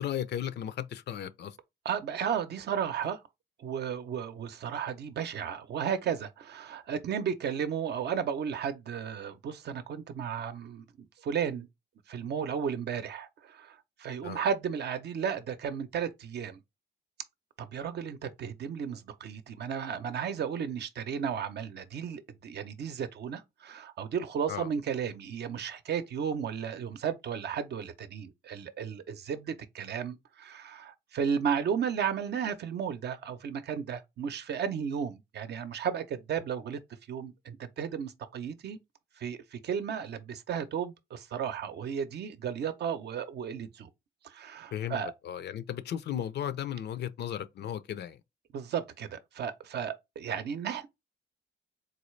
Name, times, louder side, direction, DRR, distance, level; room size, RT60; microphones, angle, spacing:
voice 1, 0.0-1.6 14.2-14.4 24.5-24.7 44.7-45.0 45.2-48.2, left 10 dB, 60° left, 0.5 m, -35 dB
voice 2, 1.8-3.2 3.6-11.7 12.1-16.6 17.6-36.8 37.1-38.8 39.2-43.9 44.2-45.1 48.5-50.9, right 7 dB, 55° right, 0.6 m, -34 dB
4.0 x 2.3 x 3.1 m
cardioid pair, 90°, 20 cm